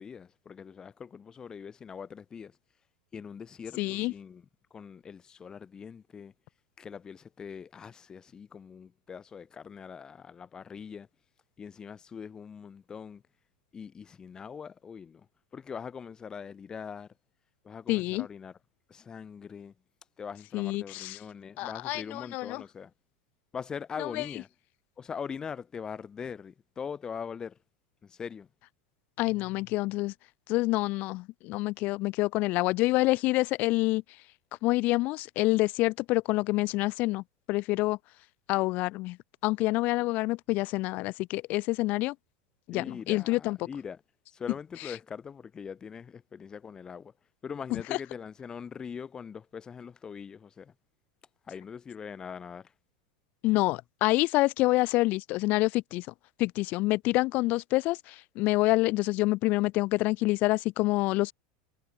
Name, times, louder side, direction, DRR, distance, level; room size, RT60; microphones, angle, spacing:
voice 1, 0.0-2.5 3.1-4.5 4.7-6.3 6.8-11.1 11.6-13.2 13.7-15.3 15.5-17.1 17.6-18.6 18.9-19.7 20.2-22.9 23.5-24.5 25.0-27.6 28.0-28.5 42.7-44.0 44.3-47.1 47.4-50.7 51.5-52.7, left 6 dB, 15° left, 5.5 m, -42 dB
voice 2, 3.8-4.1 17.9-18.3 20.5-21.2 21.6-22.6 24.0-24.2 29.2-30.1 30.5-34.0 34.6-37.2 37.5-38.0 38.5-39.2 39.4-42.1 42.7-43.6 47.7-48.0 53.4-56.1 56.4-61.3, left 20 dB, 40° left, 1.3 m, -27 dB
supercardioid pair, 150°, 4 cm